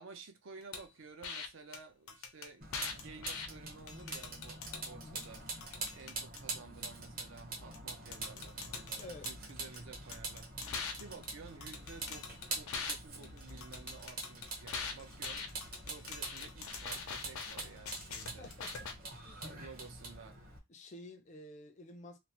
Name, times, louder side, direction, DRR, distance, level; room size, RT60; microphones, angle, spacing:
voice 1, 0.0-5.4 5.9-18.5 19.4-20.4, right 4 dB, 65° right, 0.6 m, -53 dB
sound 1, 0.7-0.9 1.2-1.5 1.7-1.8 2.1-3.5 3.9-4.9 5.2-6.4 7.7-7.8 8.1-9.8 10.1-12.9 13.2-18.9, left 5 dB, 90° left, 0.6 m, -43 dB
Vehicle, 2.6-20.6, right 3 dB, 45° right, 0.9 m, -45 dB
voice 2, 9.0-9.3 18.4-18.9 19.2-19.4 20.7-22.2, left 1 dB, 35° left, 0.4 m, -50 dB
3.0 x 2.0 x 2.8 m
head